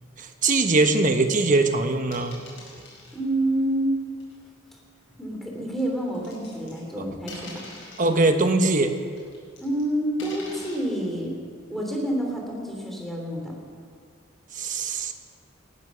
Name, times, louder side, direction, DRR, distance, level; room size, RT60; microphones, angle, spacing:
voice 1, 0.2-2.4 8.0-8.9 14.5-15.1, right 3 dB, 40° right, 6 dB, 1.1 m, -21 dB
sound 1, 2.1-3.2 4.2-4.3 5.8-6.9 7.3-8.1 9.2-9.8 10.2-10.8, left 2 dB, 70° left, 5.5 m, -43 dB
voice 2, 3.1-3.9 5.2-7.6 9.6-11.4 11.7-13.5, right 1 dB, ahead, -1 dB, 3.3 m, -28 dB
18.5 x 11.0 x 6.3 m, 2.1 s
head